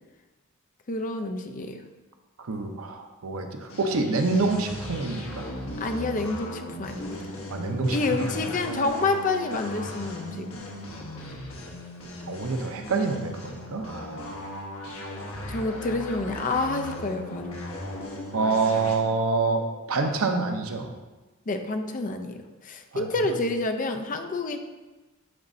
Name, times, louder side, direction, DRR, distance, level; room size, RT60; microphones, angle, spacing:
voice 1, 0.9-1.8 5.8-7.2 7.9-10.6 15.5-17.6 21.5-24.6, left 3 dB, 40° left, 5 dB, 0.5 m, -28 dB
voice 2, 2.4-5.5 7.5-8.0 12.3-14.1 18.3-19.6 19.9-20.9 22.9-23.1, right 3 dB, 90° right, 4 dB, 0.7 m, -26 dB
sound 1, 3.7-19.0, left 1 dB, 75° left, 1.2 m, -37 dB
9.5 x 4.1 x 2.7 m, 1.2 s
head